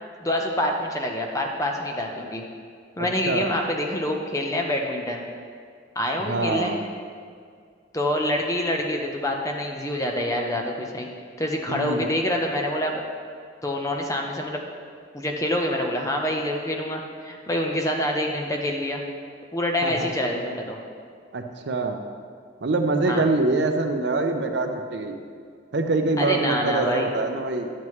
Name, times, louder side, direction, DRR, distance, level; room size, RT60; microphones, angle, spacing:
voice 1, 0.2-2.4 3.0-5.2 6.0-6.7 7.9-11.1 11.4-13.0 13.6-14.6 15.1-19.0 19.5-20.8 23.0-23.2 26.2-27.1, left 1 dB, 15° left, 1 dB, 0.7 m, -26 dB
voice 2, 6.2-6.8 11.7-12.0 19.8-20.1 21.3-22.0 22.6-25.2 25.7-27.7, right 3 dB, 60° right, 5 dB, 0.6 m, -24 dB
11.0 x 7.4 x 3.1 m, 2.1 s
head